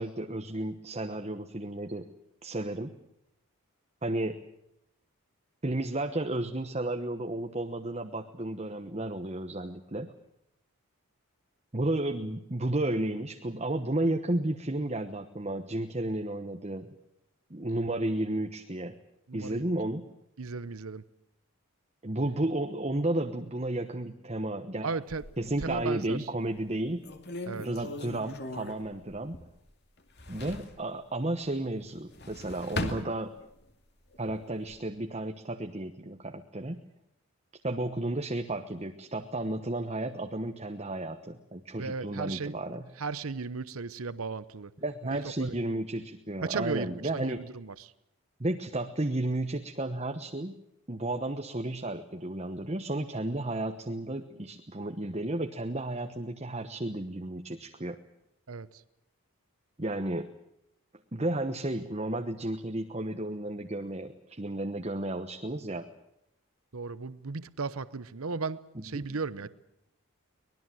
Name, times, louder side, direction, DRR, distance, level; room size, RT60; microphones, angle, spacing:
voice 1, 0.0-2.1 2.4-2.9 4.0-4.4 5.6-10.1 11.7-16.9 17.5-19.0 19.3-20.1 22.0-25.0 25.4-27.0 27.6-29.4 30.3-33.4 34.2-36.8 37.6-42.9 44.8-47.4 48.4-50.5 50.9-58.0 59.8-60.3 61.1-65.9 68.8-68.9 69.1-69.2, right 1 dB, 30° right, 1.1 m, -33 dB
voice 2, 19.3-19.7 20.4-21.0 24.8-25.2 25.6-26.2 27.5-27.7 41.8-42.5 43.0-44.7 45.1-45.5 46.4-47.9 58.5-58.8 66.7-69.5, right 4 dB, 70° right, 0.8 m, -35 dB
sound 1, 25.1-26.1 26.6-26.7 27.0-29.7 30.0-30.8 31.9-33.7 34.1-34.8, left 1 dB, 45° left, 2.4 m, -39 dB
24.5 x 20.0 x 7.7 m
head